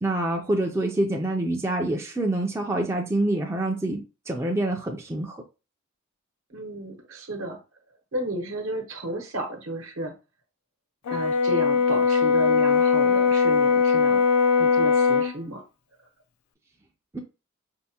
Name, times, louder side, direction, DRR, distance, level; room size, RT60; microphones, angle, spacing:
voice 1, 0.0-5.4 17.1-17.2, right 1 dB, 15° right, 1 dB, 0.4 m, -26 dB
voice 2, 6.5-7.6 8.1-10.1 11.1-14.2 14.6-15.6, right 1 dB, 65° right, 3 dB, 0.9 m, -33 dB
Brass instrument, 11.1-15.3, left 5 dB, 85° left, 0.4 m, -20 dB
4.5 x 2.1 x 2.8 m, 0.30 s
head